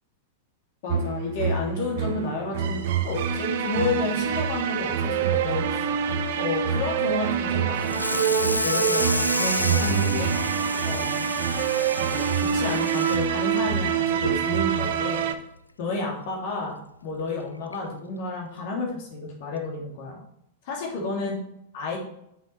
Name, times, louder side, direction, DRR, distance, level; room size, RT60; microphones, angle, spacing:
voice 1, 0.8-5.8 6.4-10.3 10.8-11.3 12.0-15.2 15.8-20.2 20.6-21.3 21.7-22.0, left 3 dB, 55° left, -2 dB, 3.1 m, -31 dB
sound 1, 0.9-15.3, right 7 dB, 55° right, 0.9 m, -26 dB
Water tap faucet / Sink (filling or washing), 7.8-14.4 14.8-15.1 15.4-15.5 15.9-16.0 17.2-17.3 17.7-17.9, left 2 dB, 90° left, 0.5 m, -30 dB
8.3 x 7.3 x 4.6 m, 0.77 s
figure-of-eight pair, 95°, 0 cm